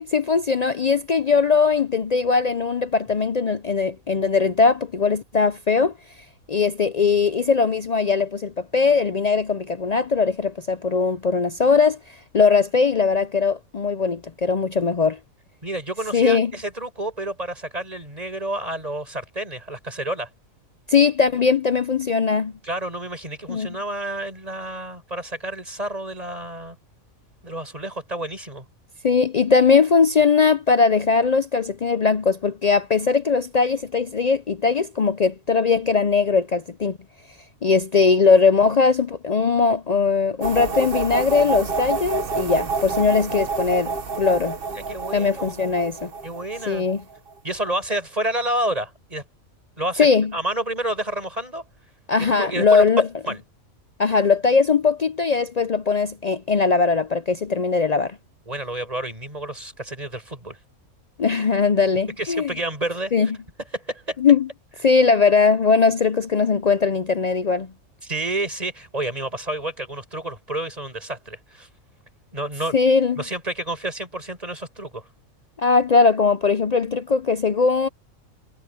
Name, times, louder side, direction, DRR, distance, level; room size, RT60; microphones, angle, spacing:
voice 1, 0.0-5.9 6.5-12.0 12.3-15.2 16.1-16.5 20.9-22.5 23.5-23.7 29.0-37.0 37.6-44.6 45.1-46.1 46.7-47.0 50.0-50.3 52.1-53.1 54.0-58.2 61.2-62.5 63.1-63.3 64.2-64.5 64.8-67.7 72.7-73.2 75.6-77.9, left 5 dB, 60° left, 0.4 m, -20 dB
voice 2, 15.6-20.3 22.6-26.8 27.4-28.6 44.7-45.5 46.2-46.9 47.4-49.2 49.8-50.1 50.3-51.6 52.2-52.8 53.3-53.4 58.5-60.6 62.2-63.3 63.7-64.2 68.0-71.7 72.3-72.8 73.2-75.1, right 1 dB, 25° right, 7.9 m, -29 dB
sound 1, 40.4-47.3, right 4 dB, 45° right, 1.3 m, -28 dB
omnidirectional pair, 1.4 m